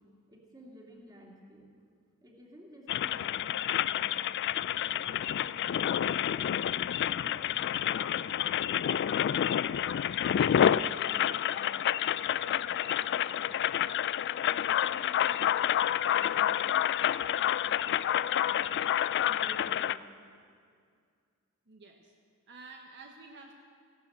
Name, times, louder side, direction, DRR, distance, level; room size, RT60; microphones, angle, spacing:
voice 1, 0.3-1.6 2.2-4.1 4.5-6.4 6.9-9.4 9.8-11.6 12.1-18.8 19.2-20.0, equal, 20° right, -1 dB, 2.7 m, -53 dB
sound 1, 2.9-20.0, left 10 dB, 55° left, 0.3 m, -29 dB
voice 2, 21.7-22.1 22.5-23.5, right 3 dB, 55° right, 2 dB, 1.1 m, -50 dB
14.5 x 12.5 x 8.0 m, 2.2 s
head